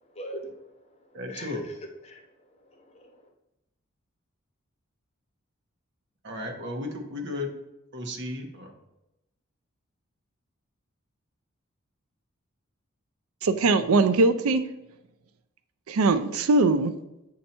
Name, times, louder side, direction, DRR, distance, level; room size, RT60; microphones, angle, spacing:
voice 1, 0.0-2.2 2.6-3.3, equal, 30° left, 2 dB, 1.0 m, -42 dB
voice 2, 1.1-1.6 6.2-7.5 7.9-8.7, left 2 dB, 55° right, 3 dB, 1.2 m, -34 dB
voice 3, 13.4-14.6 15.9-16.9, right 3 dB, 85° right, 11 dB, 0.4 m, -21 dB
8.6 x 2.9 x 5.3 m, 0.91 s
head